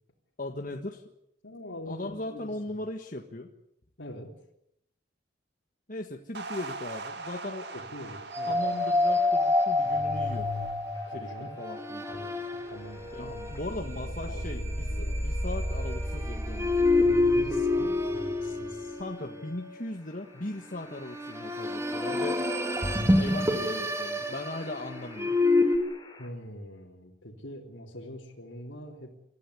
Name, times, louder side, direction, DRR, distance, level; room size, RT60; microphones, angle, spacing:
voice 1, 0.4-1.0 1.9-3.5 5.9-7.7 8.5-10.5 11.1-12.0 13.1-17.0 19.0-22.4 23.1-25.4, left 2 dB, 45° left, 3 dB, 1.7 m, -38 dB
voice 2, 1.4-2.6 4.0-4.5 7.7-8.6 11.1-11.5 12.1-15.3 17.3-19.0 26.2-29.2, left 1 dB, 80° left, -4 dB, 3.7 m, -44 dB
sound 1, 6.3-12.8, right 3 dB, 60° right, 2.3 m, -43 dB
sound 2, 8.3-19.5 21.0-25.8, left 2 dB, 15° right, 2.1 m, -28 dB
sound 3, 10.9-26.3, left 2 dB, 25° left, 5.3 m, -51 dB
28.0 x 14.5 x 9.9 m, 0.80 s
head